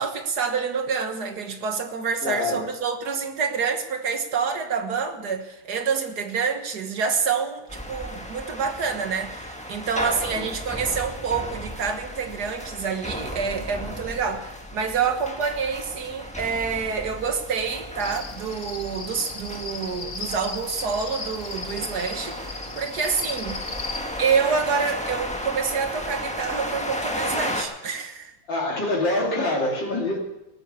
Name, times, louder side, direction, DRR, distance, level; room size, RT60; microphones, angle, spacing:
voice 1, 0.0-23.6 24.2-28.3, right 5 dB, 55° right, 7 dB, 1.9 m, -27 dB
voice 2, 2.2-2.6 10.3-10.4 28.5-30.2, left 2 dB, 65° left, -1 dB, 3.2 m, -25 dB
sound 1, 7.7-27.6, left 1 dB, 5° left, 1.3 m, -34 dB
Cricket, 18.0-24.0, left 4 dB, 35° left, 1.6 m, -36 dB
19.5 x 9.1 x 7.0 m, 0.90 s
omnidirectional pair, 2.2 m